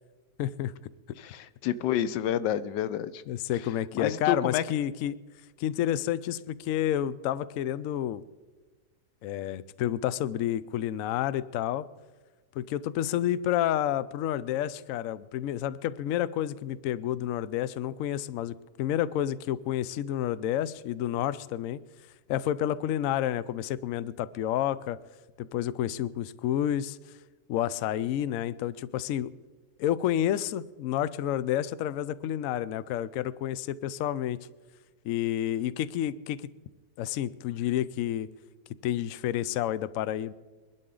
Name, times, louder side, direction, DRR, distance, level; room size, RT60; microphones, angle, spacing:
voice 1, 0.4-0.7 3.3-5.2 5.6-8.2 9.2-11.9 12.5-21.8 22.3-25.0 25.4-27.0 27.5-29.3 29.8-34.5 35.0-36.4 37.0-38.3 38.8-40.3, left 11 dB, 70° left, 16 dB, 0.8 m, -30 dB
voice 2, 1.2-3.2 3.9-4.6, left 10 dB, 90° left, 14 dB, 1.3 m, -29 dB
22.0 x 12.0 x 3.8 m, 1.3 s
omnidirectional pair, 1.8 m